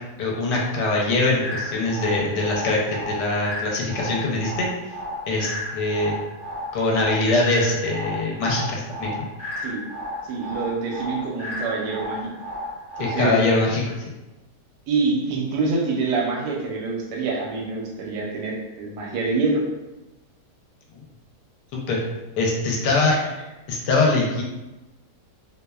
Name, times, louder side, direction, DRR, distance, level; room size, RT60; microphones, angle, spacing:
voice 1, 0.2-4.7 5.3-6.1 6.7-9.3 13.0-13.8 20.9-21.0 21.9-22.0 22.4-23.1 23.7-24.4, left 2 dB, 75° left, -2 dB, 1.2 m, -22 dB
sound 1, 1.4-13.4, left 1 dB, 40° right, 0.7 m, -33 dB
voice 2, 10.3-12.3 13.0-13.4 14.9-19.6 23.1-23.2, right 3 dB, 80° right, -1 dB, 1.2 m, -26 dB
2.9 x 2.0 x 2.2 m, 1.1 s
omnidirectional pair, 1.8 m